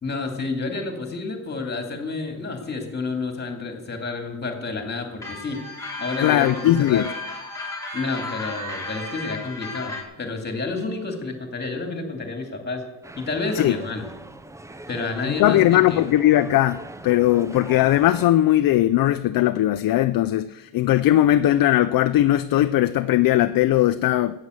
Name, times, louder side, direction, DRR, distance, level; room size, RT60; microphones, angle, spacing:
voice 1, 0.0-5.6 6.0-7.1 7.9-12.8 13.2-14.1 14.9-16.0, left 3 dB, 25° left, 4 dB, 2.5 m, -30 dB
sound 1, 5.2-10.0, left 2 dB, 10° left, 2.3 m, -34 dB
voice 2, 6.2-7.1 13.6-13.7 15.3-24.4, left 13 dB, 55° left, 11 dB, 0.5 m, -19 dB
sound 2, 13.0-18.2, right 1 dB, 10° right, 0.4 m, -41 dB
13.5 x 8.8 x 7.9 m, 1.0 s
cardioid pair, 140°, 42 cm